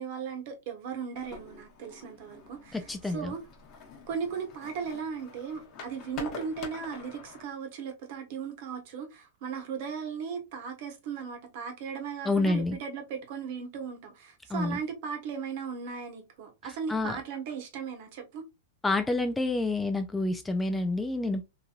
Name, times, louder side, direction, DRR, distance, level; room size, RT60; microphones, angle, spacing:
voice 1, 0.0-3.4 4.1-18.5, right 6 dB, 55° right, 0.9 m, -37 dB
sound 1, 1.2-7.4, left 4 dB, 35° left, 0.9 m, -45 dB
voice 2, 2.7-3.3 12.3-12.8 14.5-14.8 16.9-17.2 18.8-21.4, left 2 dB, 10° left, 0.3 m, -28 dB
2.9 x 2.6 x 2.3 m
hypercardioid pair, 140°, 0 cm